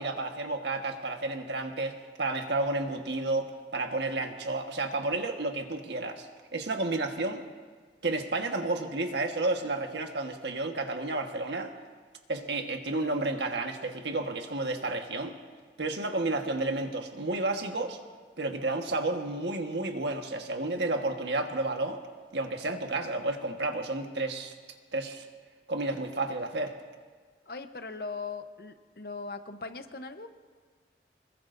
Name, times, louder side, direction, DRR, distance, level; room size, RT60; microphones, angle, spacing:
voice 1, 0.0-6.3 6.5-7.4 8.0-11.7 12.3-15.4 15.8-18.0 18.4-22.0 22.3-24.5 24.9-25.2 25.7-26.8, right 2 dB, 80° right, 4 dB, 1.4 m, -31 dB
voice 2, 27.5-30.3, left 4 dB, 55° left, 8 dB, 0.9 m, -39 dB
24.5 x 21.5 x 2.6 m, 1.5 s
head